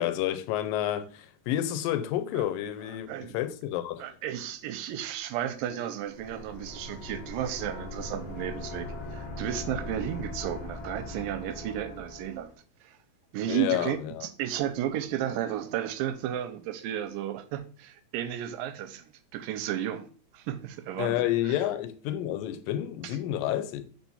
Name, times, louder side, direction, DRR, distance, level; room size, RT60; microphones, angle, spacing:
voice 1, 0.0-4.1 13.5-14.3 21.0-23.9, left 12 dB, 85° left, 2.3 m, -30 dB
voice 2, 4.0-12.5 12.8-13.0 13.3-20.1 20.3-21.2 23.0-23.2, right 10 dB, 85° right, 2.3 m, -33 dB
sound 1, 6.0-12.5, left 2 dB, 60° left, 1.3 m, -40 dB
4.7 x 4.5 x 5.4 m
omnidirectional pair, 4.0 m